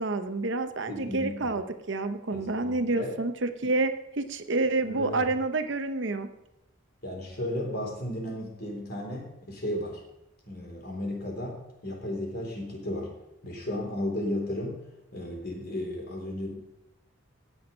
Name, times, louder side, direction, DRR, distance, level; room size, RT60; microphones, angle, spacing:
voice 1, 0.0-6.3, right 2 dB, 60° right, 9 dB, 0.8 m, -28 dB
voice 2, 0.9-1.6 2.3-3.1 4.8-5.2 7.0-10.0 10.4-11.6 11.8-13.1 13.4-14.8 15.1-16.6, left 1 dB, 50° left, 0 dB, 3.6 m, -34 dB
17.5 x 6.2 x 5.4 m, 0.91 s
head